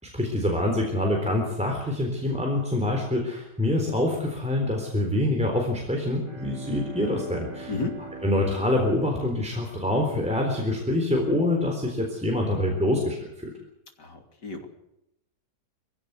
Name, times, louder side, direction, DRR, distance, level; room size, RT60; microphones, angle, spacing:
voice 1, 0.0-7.7 8.2-13.5, left 1 dB, 5° right, 1 dB, 3.8 m, -25 dB
Bowed string instrument, 6.2-10.8, right 3 dB, 50° right, 4.5 m, -42 dB
voice 2, 14.0-14.7, left 4 dB, 75° left, 5 dB, 3.5 m, -32 dB
22.5 x 16.0 x 8.1 m, 0.84 s
omnidirectional pair, 1.9 m